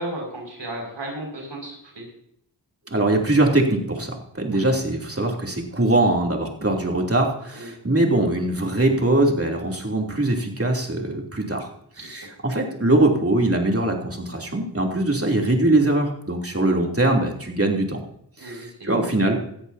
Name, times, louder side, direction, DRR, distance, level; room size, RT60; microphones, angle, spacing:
voice 1, 0.0-2.0 4.5-4.7 7.5-7.7 12.0-12.2 15.0-15.1 18.4-18.7, right 1 dB, 75° right, -1 dB, 6.1 m, -34 dB
voice 2, 2.9-11.7 12.1-18.0 18.4-19.4, right 2 dB, 30° right, 1 dB, 3.1 m, -22 dB
18.0 x 13.5 x 2.8 m, 0.72 s
wide cardioid pair, 55°, 43 cm